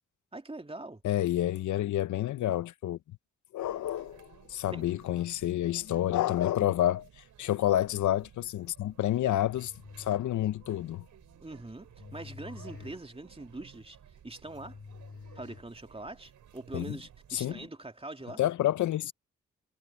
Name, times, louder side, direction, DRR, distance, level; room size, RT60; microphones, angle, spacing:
voice 1, 0.3-1.0 4.7-4.9 11.4-14.0 14.2-14.8 15.3-18.4, right 2 dB, 20° right, 2.8 m, -43 dB
voice 2, 1.0-3.0 3.5-9.7 10.0-11.1 16.7-17.0 17.3-17.6 18.4-19.1, left 13 dB, 85° left, 0.8 m, -29 dB
sound 1, 3.6-17.7, right 9 dB, 85° right, 4.9 m, -57 dB
sound 2, 9.5-16.2, left 5 dB, 50° left, 7.2 m, -50 dB
supercardioid pair, 45°, 29 cm